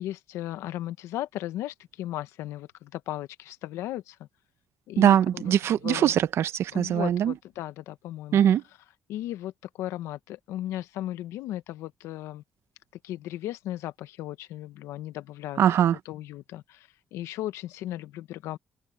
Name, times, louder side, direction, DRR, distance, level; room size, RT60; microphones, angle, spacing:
voice 1, 0.0-4.3 4.9-5.5 5.8-6.2 6.7-8.4 9.1-12.4 13.0-15.6 16.0-18.6, left 14 dB, 85° left, 1.1 m, -36 dB
voice 2, 5.0-7.3 8.3-8.6 15.6-16.0, right 10 dB, 70° right, 1.0 m, -21 dB
supercardioid pair, 70°, 5 cm